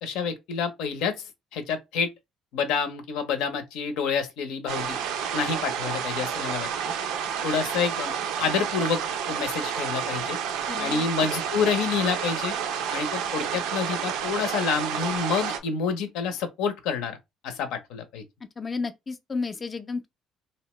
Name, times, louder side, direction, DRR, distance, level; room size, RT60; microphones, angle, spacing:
voice 1, 0.0-2.1 2.5-5.0 5.3-6.9 7.4-8.1 8.4-9.0 9.3-10.4 10.8-12.5 12.9-17.2 17.4-18.2, left 6 dB, 85° left, 0.7 m, -28 dB
sound 1, 4.7-15.6, right 7 dB, 90° right, 0.5 m, -30 dB
voice 2, 10.7-11.0 18.6-20.1, left 4 dB, 30° left, 0.4 m, -32 dB
2.7 x 2.1 x 3.0 m
cardioid pair, 105°, 0 cm